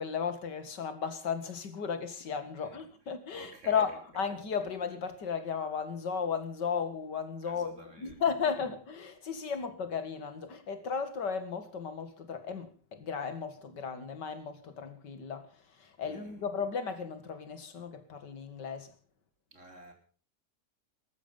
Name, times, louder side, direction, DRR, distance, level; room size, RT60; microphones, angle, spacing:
voice 1, 0.0-15.5 15.8-18.9, left 6 dB, 85° left, 2.5 m, -35 dB
voice 2, 3.3-4.2 7.4-8.2 16.0-16.5 19.5-19.9, right 2 dB, 45° right, 4.0 m, -52 dB
19.5 x 14.0 x 5.3 m
omnidirectional pair, 1.8 m